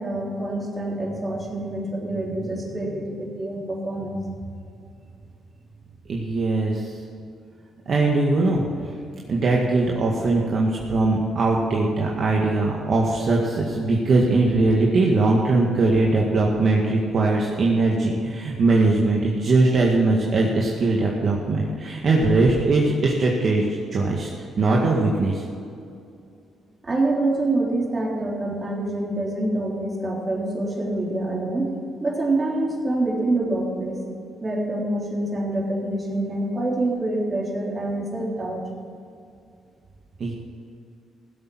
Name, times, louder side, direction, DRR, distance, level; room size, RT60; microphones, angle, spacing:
voice 1, 0.0-4.2 26.8-31.8 32.0-38.6, right 2 dB, 30° right, -2 dB, 3.6 m, -26 dB
voice 2, 6.1-6.9 7.9-8.9 9.3-24.3 24.6-25.4 40.2-40.3, right 2 dB, 50° right, -2 dB, 1.8 m, -21 dB
16.0 x 8.2 x 6.2 m, 2.4 s
cardioid pair, 90°, 0 cm